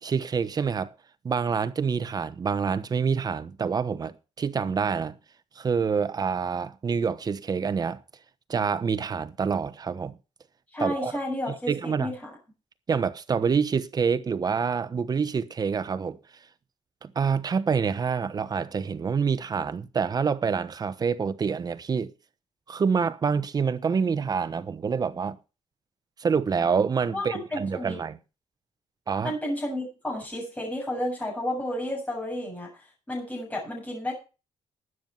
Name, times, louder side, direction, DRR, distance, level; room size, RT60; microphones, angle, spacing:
voice 1, 0.0-0.9 1.2-5.2 5.6-8.0 8.5-10.2 10.8-11.1 11.7-12.1 12.9-16.2 17.0-22.1 22.7-25.4 26.2-28.2 29.1-29.3, right 6 dB, 35° right, 1.0 m, -27 dB
voice 2, 10.7-12.2 27.1-28.0 29.2-34.1, left 1 dB, 10° left, 7.5 m, -32 dB
12.5 x 9.4 x 5.7 m
wide cardioid pair, 160°, 12 cm